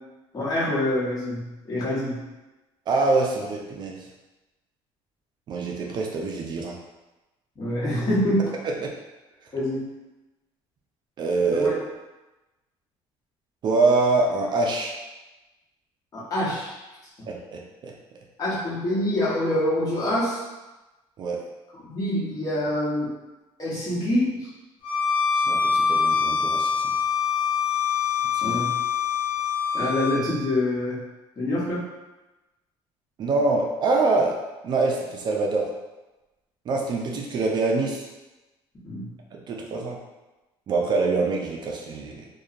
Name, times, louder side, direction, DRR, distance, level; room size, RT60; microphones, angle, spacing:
voice 1, 0.3-2.2 7.6-8.5 9.5-9.9 11.5-11.7 16.1-16.8 18.4-20.4 21.7-23.1 23.6-24.4 28.4-28.7 29.7-31.0 31.4-31.9 38.8-39.1, left 1 dB, 35° left, -7 dB, 0.9 m, -26 dB
voice 2, 2.9-4.0 5.5-6.8 8.8-8.9 11.2-11.7 13.6-14.9 17.3-17.9 21.2-21.4 25.3-26.8 28.4-28.6 33.2-34.3 34.6-35.7 36.7-38.0 39.3-40.0 40.7-42.2, right 3 dB, 45° right, 0 dB, 0.4 m, -24 dB
Bowed string instrument, 24.8-30.2, left 6 dB, 65° left, 0.6 m, -24 dB
2.7 x 2.2 x 2.4 m, 1.1 s
cardioid pair, 130°, 11 cm